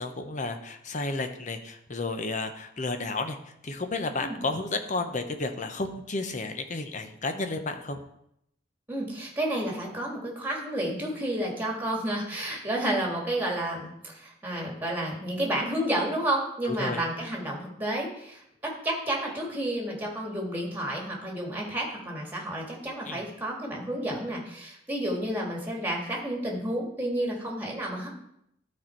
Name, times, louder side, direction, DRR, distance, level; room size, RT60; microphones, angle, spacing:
voice 1, 0.0-3.4 3.6-8.0 16.7-17.0 23.1-23.2, left 3 dB, 45° left, 7 dB, 0.8 m, -32 dB
voice 2, 8.9-28.1, right 1 dB, 10° right, -2 dB, 2.0 m, -31 dB
12.5 x 4.4 x 4.5 m, 0.76 s
head